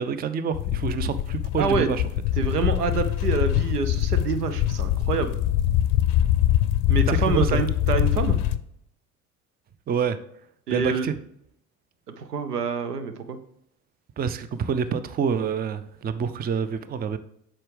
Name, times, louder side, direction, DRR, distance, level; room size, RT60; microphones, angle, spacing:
voice 1, 0.0-2.0 6.9-7.6 9.9-10.2 10.7-11.1 14.2-17.2, right 7 dB, 20° right, 13 dB, 0.5 m, -27 dB
sound 1, 0.5-8.6, left 12 dB, 50° left, 0.5 m, -23 dB
voice 2, 1.6-1.9 2.4-5.4 6.9-8.4 10.7-11.1 12.2-13.4, right 5 dB, 85° right, 10 dB, 0.7 m, -27 dB
8.6 x 6.1 x 3.3 m, 0.73 s
figure-of-eight pair, 55°, 46 cm